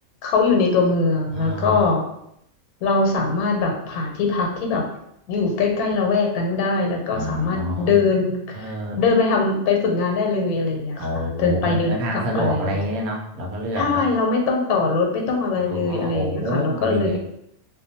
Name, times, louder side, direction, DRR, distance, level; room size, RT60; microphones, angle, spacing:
voice 1, 0.2-2.0 2.8-4.9 5.3-8.6 9.0-12.8 13.8-17.2, left 4 dB, 80° left, 1 dB, 1.1 m, -22 dB
voice 2, 1.3-1.8 7.1-8.0 8.5-9.0 11.0-14.1 15.7-17.2, equal, 80° right, -1 dB, 1.1 m, -27 dB
2.5 x 2.2 x 2.7 m, 0.77 s
omnidirectional pair, 1.5 m